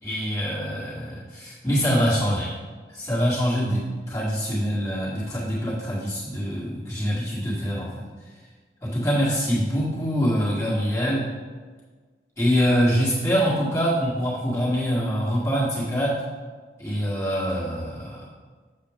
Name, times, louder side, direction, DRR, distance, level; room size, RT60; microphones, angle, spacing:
voice 1, 0.0-2.5 2.9-8.0 8.8-11.3 12.4-16.2 16.8-18.2, equal, 15° left, -9 dB, 1.8 m, -24 dB
7.6 x 6.7 x 3.6 m, 1.4 s
head